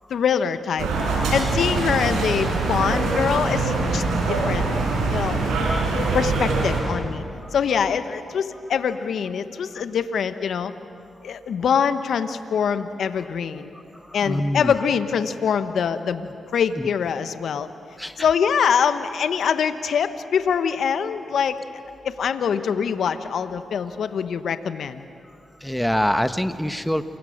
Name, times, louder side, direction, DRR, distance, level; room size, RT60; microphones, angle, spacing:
voice 1, 0.1-0.9 1.3-4.7 5.1-5.4 6.1-7.2 7.5-10.7 11.2-13.7 14.1-16.3 16.5-17.7 18.2-21.6 22.0-25.0, left 7 dB, 70° left, 11 dB, 1.1 m, -24 dB
sound 1, 0.8-6.8, right 3 dB, 85° right, 5.9 m, -23 dB
voice 2, 13.7-14.7 16.2-16.3 16.8-16.9 18.0-18.2 25.6-27.0, equal, 5° left, 10 dB, 1.4 m, -25 dB
28.5 x 24.0 x 6.6 m, 2.5 s
supercardioid pair, 45°, 0 cm